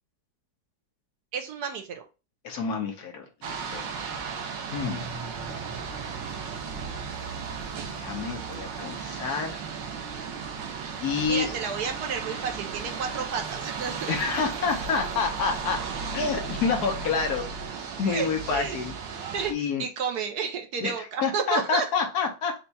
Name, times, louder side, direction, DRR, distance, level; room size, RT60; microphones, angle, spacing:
voice 1, 1.3-2.0 11.3-14.2 18.0-18.8 19.3-21.9, right 6 dB, 70° right, 5 dB, 1.1 m, -31 dB
voice 2, 2.4-3.9 4.7-5.0 7.9-9.6 11.0-11.6 14.1-15.8 16.1-17.5 18.0-18.9 19.5-19.8 20.8-22.7, left 5 dB, 65° left, 3 dB, 1.2 m, -28 dB
sound 1, 3.4-19.5, right 5 dB, 90° right, 1.5 m, -35 dB
sound 2, 4.8-17.4, right 3 dB, 20° right, 0.6 m, -45 dB
4.4 x 2.3 x 4.0 m, 0.30 s
omnidirectional pair, 1.9 m